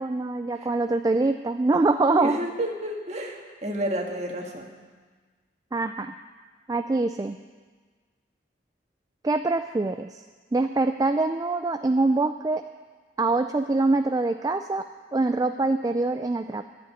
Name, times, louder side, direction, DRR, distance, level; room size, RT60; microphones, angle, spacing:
voice 1, 0.0-2.4 5.7-6.1 6.7-7.4 9.2-10.2 10.5-12.6 13.2-16.6, right 3 dB, 20° right, 7 dB, 0.3 m, -24 dB
voice 2, 2.1-4.7, equal, 35° right, 1 dB, 1.7 m, -31 dB
12.0 x 7.7 x 9.8 m, 1.4 s
head